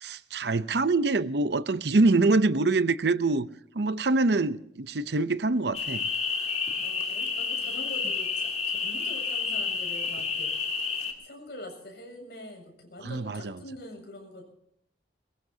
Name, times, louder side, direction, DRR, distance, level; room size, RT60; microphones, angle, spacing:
voice 1, 0.0-3.5 3.7-6.0 13.0-13.5, right 3 dB, 70° right, 0.7 m, -25 dB
sound 1, 5.7-11.1, left 5 dB, 40° left, 2.8 m, -30 dB
voice 2, 6.8-10.5 11.0-14.4, left 1 dB, 65° left, 7.4 m, -44 dB
22.5 x 22.0 x 2.8 m
head